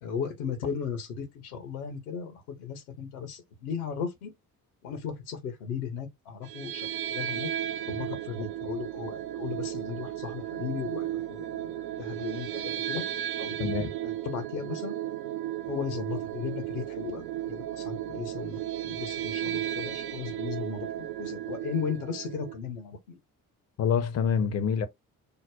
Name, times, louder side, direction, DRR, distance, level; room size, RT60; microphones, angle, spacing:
voice 1, 0.0-4.3 4.8-7.5 7.9-13.0 13.4-13.7 14.0-15.0 15.7-23.2, left 6 dB, 70° left, 0.8 m, -36 dB
sound 1, 6.4-22.6, right 12 dB, 60° right, 0.5 m, -34 dB
voice 2, 13.6-13.9 23.8-24.9, left 7 dB, 35° left, 0.6 m, -26 dB
5.2 x 2.1 x 2.3 m
figure-of-eight pair, 40°, 45 cm